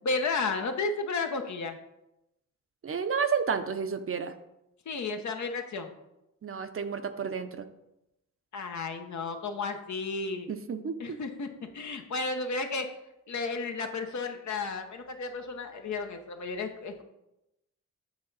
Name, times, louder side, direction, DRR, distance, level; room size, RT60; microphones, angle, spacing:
voice 1, 0.0-1.8 4.9-5.9 8.5-10.5 11.0-12.9 13.3-17.0, left 3 dB, 65° left, 5 dB, 0.9 m, -33 dB
voice 2, 2.8-4.3 6.4-7.7 10.5-11.2, right 6 dB, 45° right, 9 dB, 0.6 m, -31 dB
7.9 x 3.9 x 4.0 m, 0.90 s
cardioid pair, 55°, 31 cm